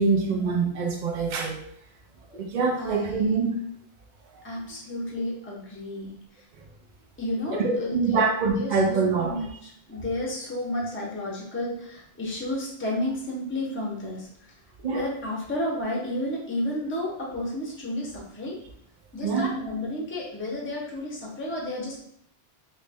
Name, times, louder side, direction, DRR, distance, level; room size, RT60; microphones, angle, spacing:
voice 1, 0.0-1.6 2.3-3.6 7.5-9.4 14.8-15.0 19.2-19.5, right 4 dB, 55° right, 1 dB, 0.6 m, -24 dB
voice 2, 2.8-3.3 4.4-6.1 7.2-8.2 8.5-8.8 9.2-14.3 14.9-18.6 19.1-22.0, left 1 dB, 15° left, -3 dB, 0.7 m, -32 dB
3.1 x 2.7 x 3.4 m, 0.70 s
omnidirectional pair, 1.2 m